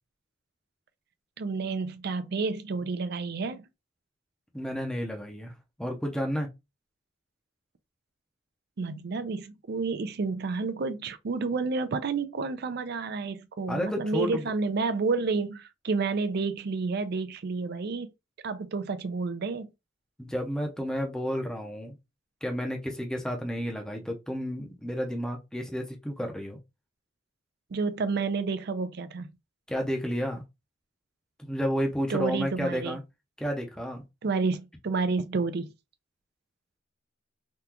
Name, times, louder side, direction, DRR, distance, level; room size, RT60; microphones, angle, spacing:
voice 1, 1.4-3.6 8.8-18.1 18.4-19.7 27.7-29.3 32.1-33.0 34.2-35.7, right 4 dB, 55° right, 0.4 m, -30 dB
voice 2, 4.5-5.5 5.8-6.5 13.7-14.5 20.2-22.0 22.4-26.6 29.7-30.4 31.4-33.0 33.4-34.0, equal, 5° left, 0.6 m, -31 dB
3.6 x 2.3 x 2.8 m
head